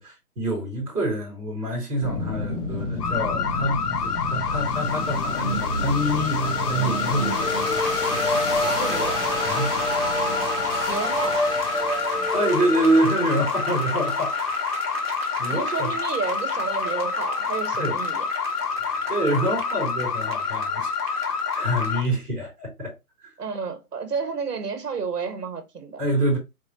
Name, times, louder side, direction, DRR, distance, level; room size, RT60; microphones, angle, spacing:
voice 1, 0.0-7.5 9.4-9.7 12.3-14.5 15.4-15.9 17.8-18.0 18.7-22.9 23.2-23.3 26.0-26.4, right 1 dB, ahead, 0.7 m, -26 dB
sound 1, 2.0-14.8, left 1 dB, 50° left, 1.8 m, -28 dB
sound 2, 3.0-22.0, left 6 dB, 85° left, 1.0 m, -28 dB
sound 3, 6.9-22.1, right 5 dB, 40° right, 0.7 m, -37 dB
voice 2, 8.6-9.2 10.8-11.6 15.4-18.3 23.4-26.0, right 5 dB, 85° right, 1.5 m, -31 dB
4.7 x 2.2 x 4.1 m
hypercardioid pair, 160°, 46 cm